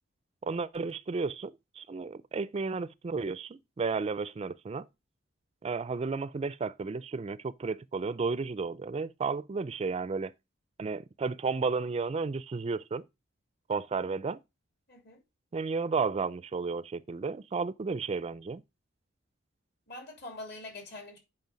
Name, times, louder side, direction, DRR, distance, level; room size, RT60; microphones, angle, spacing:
voice 1, 0.4-4.9 5.6-10.3 10.8-13.0 13.7-14.4 15.5-18.6, right 4 dB, 30° right, 0.4 m, -33 dB
voice 2, 14.9-15.2 19.9-21.2, left 2 dB, 60° left, 3.4 m, -44 dB
8.1 x 5.4 x 5.1 m
head